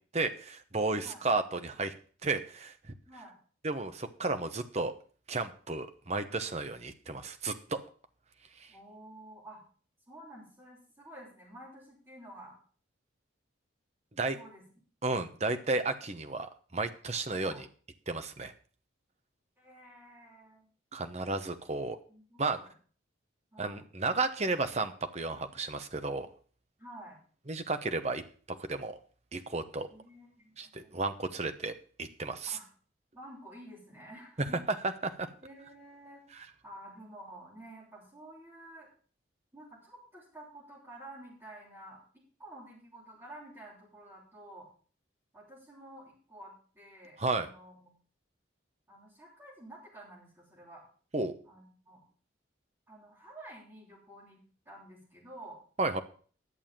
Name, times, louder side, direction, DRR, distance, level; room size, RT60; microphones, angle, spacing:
voice 1, 0.1-1.9 2.2-2.7 3.6-4.9 5.3-7.8 14.2-14.4 15.0-17.7 18.1-18.5 20.9-22.0 22.4-22.6 23.6-26.3 27.5-28.2 28.5-29.0 29.3-29.9 30.6-32.6 35.0-35.3 47.2-47.5 51.1-51.3 55.8-56.0, right 3 dB, 35° right, 9 dB, 1.0 m, -33 dB
voice 2, 8.7-9.6 10.1-12.6 14.3-14.6 17.4-17.6 19.6-20.7 22.1-22.7 23.5-23.8 26.8-27.2 29.9-30.9 32.5-32.7 33.1-34.6 35.4-38.9 39.5-44.7 45.3-47.9 48.9-50.8 51.4-52.0 52.9-55.6, right 1 dB, 15° right, -11 dB, 5.3 m, -51 dB
11.0 x 7.2 x 7.5 m, 0.42 s
head